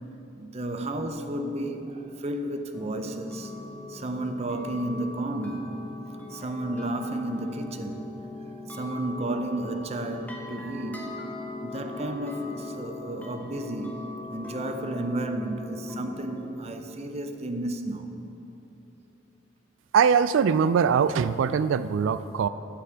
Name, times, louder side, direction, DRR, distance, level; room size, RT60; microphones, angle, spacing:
voice 1, 0.4-3.5 3.9-5.8 6.3-8.1 8.7-11.1 11.6-14.0 14.3-18.1, right 1 dB, 35° right, 0.6 m, -32 dB
sound 1, 2.7-16.5, left 2 dB, 10° left, 1.1 m, -40 dB
voice 2, 19.9-22.5, right 6 dB, 90° right, 0.3 m, -22 dB
9.5 x 5.9 x 8.1 m
head